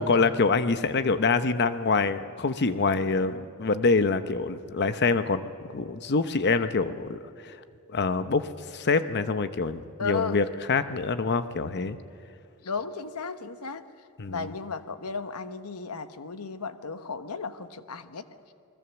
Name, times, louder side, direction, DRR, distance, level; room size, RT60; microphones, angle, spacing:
voice 1, 0.0-3.3 3.6-7.5 7.9-12.0 14.2-14.5, left 4 dB, 50° left, 11 dB, 0.8 m, -25 dB
voice 2, 3.0-3.4 10.0-10.4 12.6-13.9 14.3-18.4, left 4 dB, 80° left, 11 dB, 1.1 m, -35 dB
28.5 x 20.5 x 7.1 m, 2.5 s
head